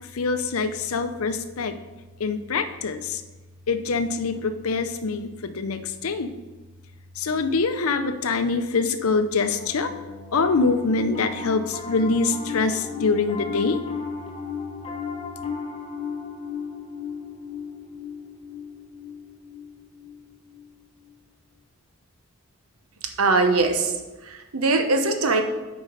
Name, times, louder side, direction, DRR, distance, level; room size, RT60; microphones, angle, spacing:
voice 1, 0.1-1.8 2.2-3.2 3.7-6.3 7.2-9.9 10.3-13.8, left 4 dB, 75° left, 9 dB, 0.6 m, -24 dB
Piano, 9.6-21.1, left 5 dB, 25° left, 0.9 m, -36 dB
voice 2, 23.2-24.0 24.2-25.4, right 3 dB, 75° right, 5 dB, 0.9 m, -21 dB
8.4 x 5.1 x 5.1 m, 1.2 s
head